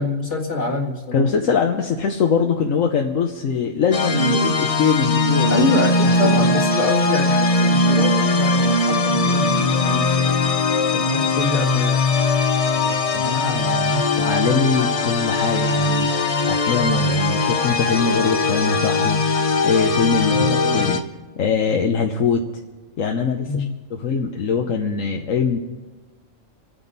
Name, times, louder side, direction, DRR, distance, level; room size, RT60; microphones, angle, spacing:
voice 1, 0.0-1.3 5.5-10.4 10.9-12.0 20.3-20.9 23.5-23.7, left 2 dB, 65° left, 0 dB, 2.3 m, -25 dB
voice 2, 1.1-5.7 6.0-6.4 12.7-20.4 20.7-21.0 21.4-22.4 23.0-23.6 23.9-25.6, left 5 dB, 85° left, 2 dB, 1.3 m, -22 dB
sound 1, 3.9-21.0, left 2 dB, 35° left, 0.6 m, -20 dB
28.0 x 9.7 x 4.1 m, 1.3 s
omnidirectional pair, 1.3 m